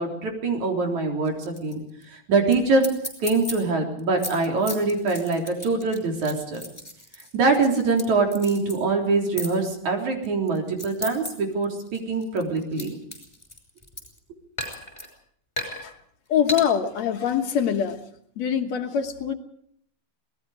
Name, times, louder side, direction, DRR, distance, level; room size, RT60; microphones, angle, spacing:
voice 1, 0.0-1.8 2.1-2.9 3.2-6.6 7.3-13.0, right 3 dB, 70° right, 2 dB, 5.1 m, -24 dB
sound 1, 1.3-1.7 2.0-2.1 2.5-2.6 2.8-3.5 4.0-8.0 8.3-8.8 9.4-9.5 10.2-11.3 11.6-14.2 14.6-15.1 15.6-15.8 16.5-16.6, left 1 dB, 10° left, 5.5 m, -34 dB
voice 2, 16.3-18.0 18.4-19.3, left 8 dB, 65° left, 6 dB, 2.5 m, -24 dB
26.5 x 19.5 x 5.0 m, 0.66 s
omnidirectional pair, 3.4 m